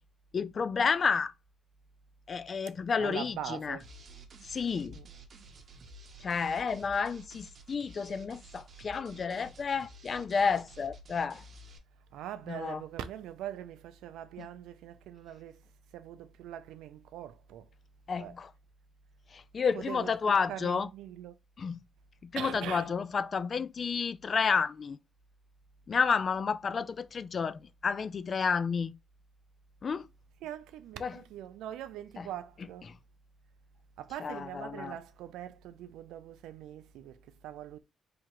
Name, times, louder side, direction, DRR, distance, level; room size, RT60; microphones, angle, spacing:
voice 1, 0.3-1.3 2.3-3.8 4.4-5.0 6.2-11.4 12.5-12.8 14.4-14.5 18.1-18.5 19.3-20.9 21.6-21.8 22.2-25.0 25.9-28.9 29.8-30.1 31.0-31.1 32.2-32.3 34.2-34.9, left 5 dB, 45° left, 0.3 m, -31 dB
voice 2, 3.0-3.8 4.9-5.1 12.1-15.6 15.9-17.7 18.2-18.4 19.7-20.1 20.5-21.3 22.4-23.0 30.4-32.9 34.0-37.8, right 11 dB, 90° right, 0.4 m, -42 dB
sound 1, 3.8-11.8, right 3 dB, 50° right, 0.8 m, -52 dB
3.5 x 2.8 x 2.9 m
cardioid pair, 90°, 0 cm